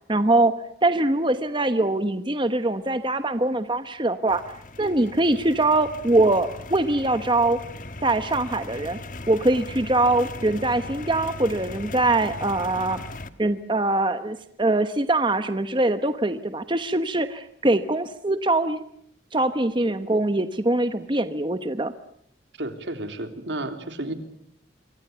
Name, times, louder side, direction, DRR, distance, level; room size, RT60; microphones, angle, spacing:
voice 1, 0.1-0.5 0.8-4.4 4.8-7.6 8.0-9.0 9.3-13.0 13.4-18.8 19.3-21.9, right 2 dB, 25° right, 10 dB, 1.1 m, -23 dB
sound 1, 4.3-13.3, left 2 dB, 45° left, 1.5 m, -39 dB
voice 2, 22.6-24.1, right 1 dB, 80° right, 7 dB, 3.5 m, -32 dB
27.0 x 24.5 x 6.9 m, 0.72 s
head